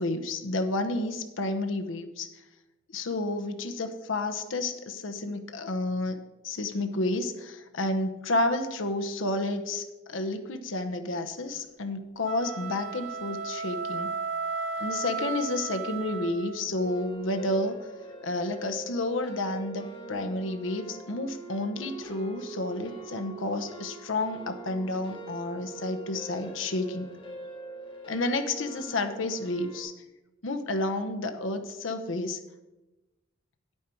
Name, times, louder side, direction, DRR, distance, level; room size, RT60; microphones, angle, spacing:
voice 1, 0.0-2.3 2.9-6.2 6.4-14.1 14.8-17.7 18.2-27.1 28.1-29.9 30.4-32.4, left 2 dB, 75° left, 6 dB, 0.9 m, -30 dB
sound 1, 12.2-16.7, right 4 dB, 75° right, 1.3 m, -34 dB
sound 2, 16.7-29.8, right 3 dB, 30° left, 1.9 m, -43 dB
9.2 x 8.9 x 4.5 m, 1.1 s
head